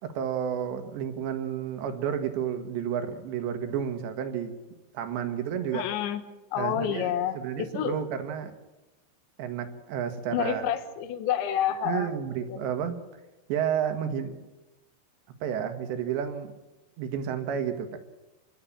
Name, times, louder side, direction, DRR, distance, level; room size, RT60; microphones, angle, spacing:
voice 1, 0.0-4.6 4.9-5.8 6.6-8.5 9.4-10.7 11.8-13.0 13.5-14.5 15.4-16.5 17.0-18.0, right 8 dB, 70° right, 7 dB, 3.8 m, -31 dB
voice 2, 5.7-6.2 6.5-8.0 10.3-12.1, left 10 dB, 75° left, 9 dB, 3.6 m, -29 dB
27.5 x 12.5 x 8.8 m, 1.1 s
omnidirectional pair, 5.4 m